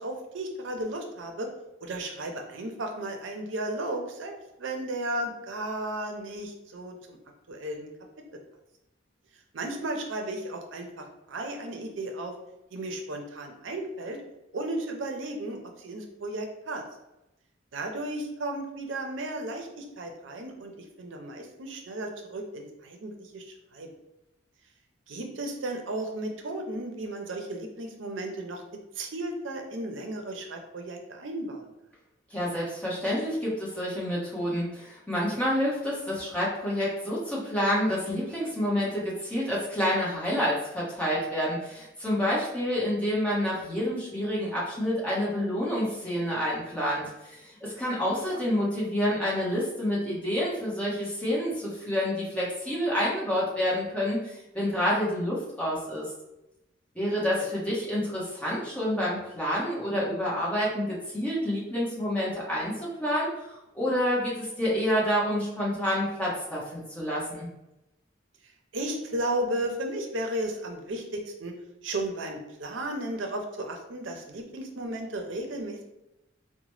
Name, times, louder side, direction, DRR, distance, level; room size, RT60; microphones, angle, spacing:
voice 1, 0.0-1.5 1.8-7.2 7.5-7.9 8.3-8.4 9.5-12.3 12.7-14.2 14.5-16.8 17.7-23.9 25.1-28.6 29.0-31.7 48.3-48.4 68.4-71.5 71.8-75.8, right 1 dB, 80° right, 4 dB, 0.5 m, -34 dB
voice 2, 32.3-56.0 56.9-67.5, equal, 5° left, -7 dB, 1.0 m, -28 dB
3.9 x 2.1 x 3.1 m, 0.92 s
head